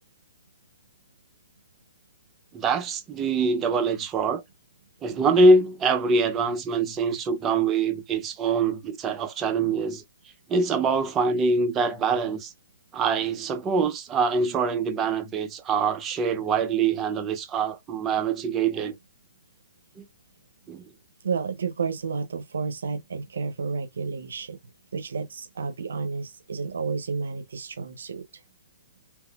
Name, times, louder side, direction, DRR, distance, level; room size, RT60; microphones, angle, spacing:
voice 1, 2.5-4.4 5.0-10.0 10.5-12.5 12.9-18.9 20.0-20.1 20.7-20.8, right 4 dB, 20° right, 0.5 m, -24 dB
voice 2, 21.2-24.6 24.9-28.4, right 5 dB, 85° right, 0.6 m, -31 dB
3.5 x 2.8 x 2.3 m
hypercardioid pair, 155°, 0 cm